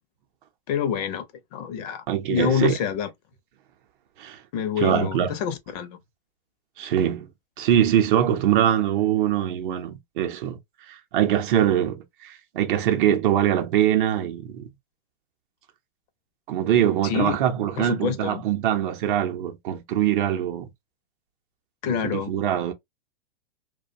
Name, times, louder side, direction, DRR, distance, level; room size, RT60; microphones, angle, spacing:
voice 1, 0.7-1.3 1.5-2.0 2.3-3.1 4.5-6.0 17.0-17.4 17.8-18.4 21.8-22.3, left 8 dB, 45° left, 0.5 m, -26 dB
voice 2, 2.1-2.7 4.2-4.4 4.8-5.3 6.8-7.3 7.6-10.6 10.9-14.7 16.5-20.7 21.8-22.7, right 10 dB, 60° right, 0.6 m, -23 dB
2.4 x 2.1 x 2.5 m
hypercardioid pair, 135°, 29 cm